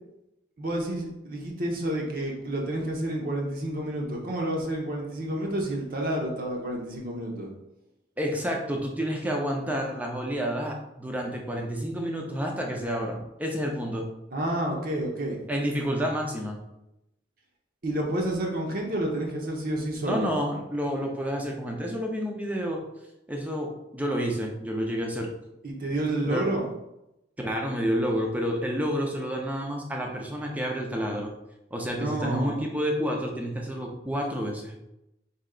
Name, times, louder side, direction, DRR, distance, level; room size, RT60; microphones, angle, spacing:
voice 1, 0.6-7.5 14.3-15.4 17.8-20.3 25.6-26.7 32.0-32.6, right 1 dB, 45° right, 0 dB, 0.7 m, -29 dB
voice 2, 8.2-14.1 15.5-16.6 20.0-22.8 23.3-25.3 26.2-26.4 27.4-31.3 31.7-34.9, equal, 10° right, 0 dB, 0.6 m, -29 dB
4.3 x 2.8 x 3.7 m, 0.89 s
head